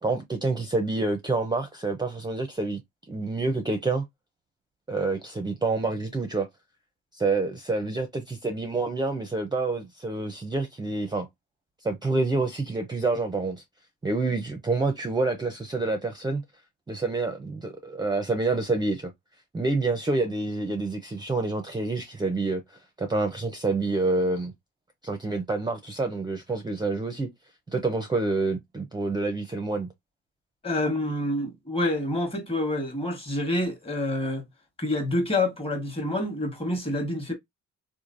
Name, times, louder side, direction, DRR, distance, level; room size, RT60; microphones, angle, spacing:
voice 1, 0.0-2.8 3.1-4.0 4.9-6.5 7.1-11.3 11.8-13.6 14.0-16.4 16.9-19.1 19.5-24.5 25.0-27.3 27.7-29.9, right 3 dB, 15° right, 0.5 m, -27 dB
voice 2, 30.6-34.4 34.8-37.3, left 1 dB, 20° left, 1.1 m, -27 dB
3.1 x 2.3 x 2.5 m
cardioid pair, 90°, 30 cm